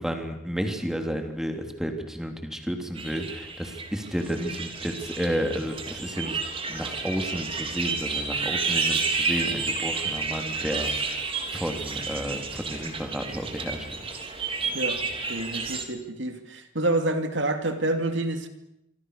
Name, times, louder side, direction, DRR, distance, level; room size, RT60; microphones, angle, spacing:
voice 1, 0.0-6.4 6.7-13.8, equal, 5° right, 4 dB, 3.2 m, -32 dB
sound 1, 2.9-15.8, right 4 dB, 30° right, 3.3 m, -31 dB
voice 2, 15.3-18.5, right 2 dB, 70° right, 7 dB, 2.7 m, -28 dB
26.0 x 26.0 x 6.7 m, 0.81 s
head